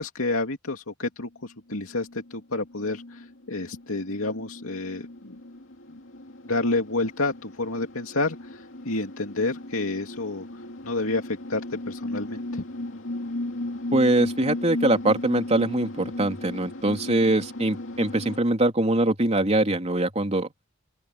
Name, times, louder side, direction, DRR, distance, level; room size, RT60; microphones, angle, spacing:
voice 1, 0.0-5.4 6.5-10.4 10.8-11.6 11.9-12.6, left 2 dB, 85° left, 2.5 m, -29 dB
sound 1, 1.7-18.4, left 1 dB, 65° left, 2.7 m, -36 dB
voice 2, 13.9-20.5, right 1 dB, 30° right, 3.4 m, -23 dB
open air
head